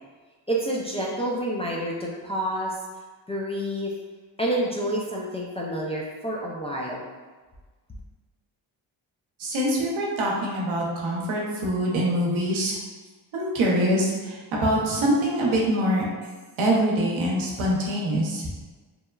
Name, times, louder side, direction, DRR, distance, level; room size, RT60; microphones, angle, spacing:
voice 1, 0.5-2.8 3.3-3.9 4.4-7.0, right 1 dB, 15° left, -5 dB, 0.4 m, -28 dB
voice 2, 9.4-12.8 13.3-16.0 16.6-18.5, equal, 70° right, -3 dB, 0.8 m, -24 dB
3.0 x 2.2 x 2.3 m, 1.3 s
supercardioid pair, 50°, 49 cm